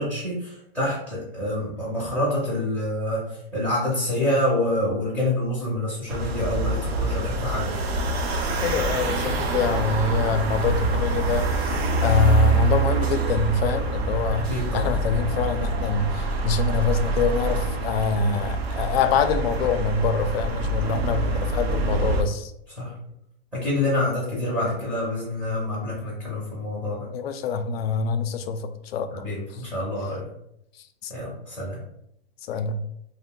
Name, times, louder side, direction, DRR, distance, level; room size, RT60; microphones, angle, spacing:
voice 1, 0.0-7.8 14.3-14.9 20.7-20.9 22.7-23.0 23.5-27.1 29.1-30.2 31.1-31.8, left 1 dB, 5° right, -9 dB, 0.6 m, -27 dB
sound 1, 6.1-22.2, right 2 dB, 85° right, 0.6 m, -25 dB
voice 2, 8.6-11.5 12.0-22.5 27.1-29.3 31.0-31.1 32.5-32.8, left 4 dB, 75° left, 9 dB, 0.5 m, -25 dB
2.5 x 2.1 x 3.6 m, 0.77 s
supercardioid pair, 160°, 30 cm